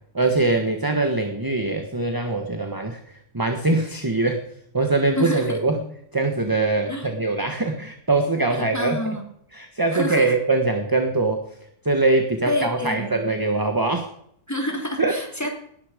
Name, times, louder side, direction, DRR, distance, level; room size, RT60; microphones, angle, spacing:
voice 1, 0.1-4.4 4.7-5.8 6.1-9.0 9.5-11.4 11.8-14.0 15.0-15.1, right 2 dB, 15° right, 4 dB, 1.4 m, -22 dB
voice 2, 5.2-5.5 6.9-7.1 8.5-9.2 9.9-10.3 12.5-13.2 14.5-15.5, left 1 dB, 10° left, 1 dB, 3.5 m, -28 dB
19.0 x 11.5 x 5.2 m, 0.69 s
omnidirectional pair, 1.6 m